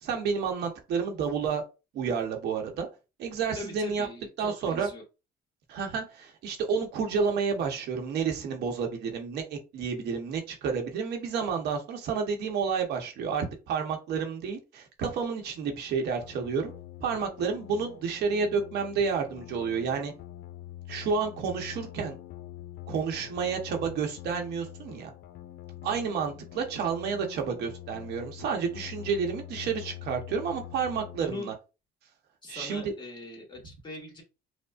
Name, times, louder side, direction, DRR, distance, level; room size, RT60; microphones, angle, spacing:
voice 1, 0.0-1.6 1.9-2.9 3.2-4.1 4.4-4.9 5.7-16.7 17.0-20.1 20.9-22.2 22.9-25.1 25.8-31.5 32.5-32.9, right 5 dB, 75° right, 0.9 m, -30 dB
voice 2, 3.5-5.0 31.2-31.5 32.4-34.2, left 2 dB, 25° left, 1.5 m, -41 dB
sound 1, 16.2-31.2, left 13 dB, 60° left, 0.4 m, -45 dB
5.1 x 2.1 x 2.4 m
cardioid pair, 110°, 17 cm